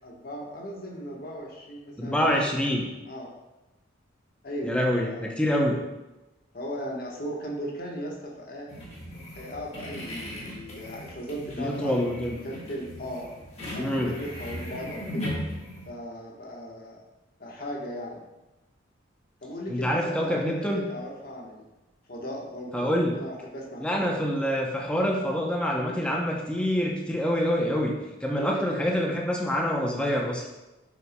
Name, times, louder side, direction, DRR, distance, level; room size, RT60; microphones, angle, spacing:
voice 1, 0.0-2.6 3.1-3.3 4.4-5.2 6.5-8.7 9.3-12.0 12.4-13.3 13.7-15.4 15.9-17.0 17.4-18.2 19.4-21.6 22.1-24.1 28.4-28.8, equal, 45° left, -2 dB, 1.2 m, -37 dB
voice 2, 2.0-2.8 4.6-5.8 9.1-9.2 11.6-12.4 13.8-14.1 19.7-20.9 22.7-23.2 23.8-27.9 28.2-30.5, equal, 5° left, -1 dB, 0.6 m, -26 dB
sound 1, 8.7-15.9, left 1 dB, 30° left, 1.4 m, -38 dB
7.7 x 5.7 x 2.2 m, 1.0 s
head